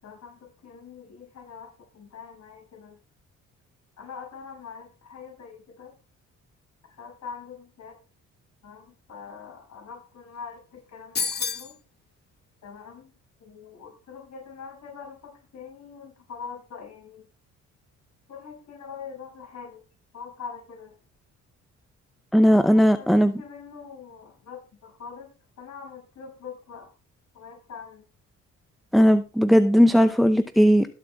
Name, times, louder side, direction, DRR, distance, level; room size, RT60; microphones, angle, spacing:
voice 1, 0.0-3.0 4.0-5.9 7.0-8.0 8.6-11.7 12.6-13.1 13.4-17.3 18.3-19.8 20.1-21.0 22.4-25.3 25.6-26.9 27.3-28.0, left 6 dB, 65° left, -1 dB, 6.9 m, -43 dB
sound 1, 11.2-11.8, left 5 dB, 35° left, 0.9 m, -28 dB
voice 2, 22.3-23.4 28.9-30.9, equal, ahead, 10 dB, 0.7 m, -17 dB
21.0 x 7.7 x 2.4 m, 0.36 s
cardioid pair, 90°, 30 cm